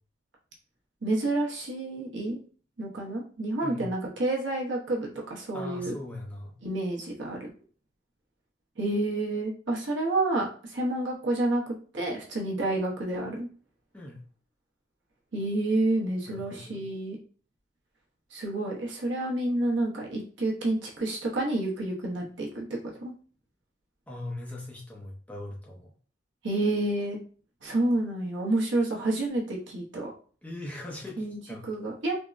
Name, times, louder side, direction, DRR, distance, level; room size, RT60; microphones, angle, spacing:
voice 1, 1.0-2.4 2.8-5.9 6.6-7.5 8.8-11.6 11.9-13.5 15.3-17.2 18.3-22.7 23.0-23.1 26.4-27.2 27.6-30.1 31.2-31.4 31.6-32.2, right 2 dB, 75° right, -2 dB, 0.8 m, -29 dB
voice 2, 5.5-6.5 13.9-14.2 16.3-16.8 24.1-25.9 30.4-31.7, left 1 dB, 5° left, -2 dB, 0.5 m, -40 dB
3.5 x 2.0 x 2.4 m, 0.42 s
head